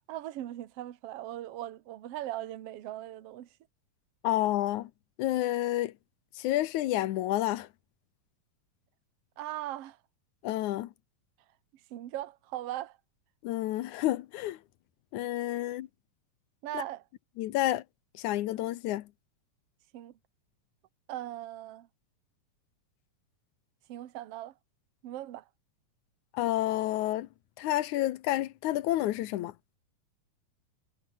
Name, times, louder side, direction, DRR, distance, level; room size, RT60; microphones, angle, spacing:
voice 1, 0.1-3.5 9.4-10.0 11.9-13.0 16.6-17.0 19.9-20.1 21.1-21.9 23.9-24.5 25.0-25.4, right 13 dB, 60° right, 2.1 m, -39 dB
voice 2, 4.2-4.9 5.2-5.9 6.4-7.7 10.4-10.9 13.4-14.6 15.1-15.9 16.7-16.8 17.4-17.8 18.2-19.1 26.3-27.3 27.6-29.5, left 14 dB, 75° left, 2.3 m, -29 dB
omnidirectional pair, 3.5 m